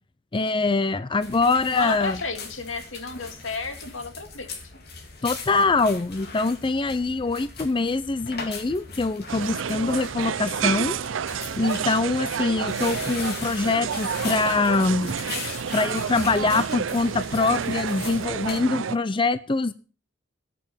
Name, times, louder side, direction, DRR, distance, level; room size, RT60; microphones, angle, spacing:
voice 1, 0.3-2.2 5.2-11.0 11.6-15.2 15.7-19.7, left 3 dB, 25° left, 14 dB, 0.5 m, -24 dB
sound 1, 1.2-18.6, left 4 dB, 55° left, 2.7 m, -39 dB
voice 2, 1.7-4.5, left 3 dB, 85° left, 6 dB, 2.2 m, -32 dB
sound 2, 9.3-19.0, right 7 dB, 80° right, 0.5 m, -30 dB
18.5 x 6.8 x 5.5 m, 0.38 s
head